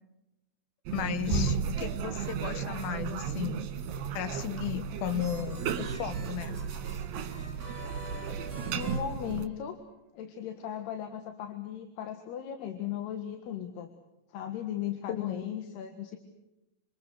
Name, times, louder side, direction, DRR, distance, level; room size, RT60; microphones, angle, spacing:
voice 1, 0.9-3.7 4.1-6.6 15.1-15.5, left 11 dB, 75° left, 12 dB, 3.1 m, -35 dB
sound 1, 0.9-9.5, right 6 dB, 70° right, 3.2 m, -34 dB
sound 2, 4.6-10.0, right 1 dB, 40° right, 5.4 m, -47 dB
voice 2, 8.7-9.8 10.1-13.9 14.3-16.2, left 10 dB, 90° left, 7 dB, 3.7 m, -37 dB
26.5 x 26.5 x 6.4 m, 0.94 s
omnidirectional pair, 4.5 m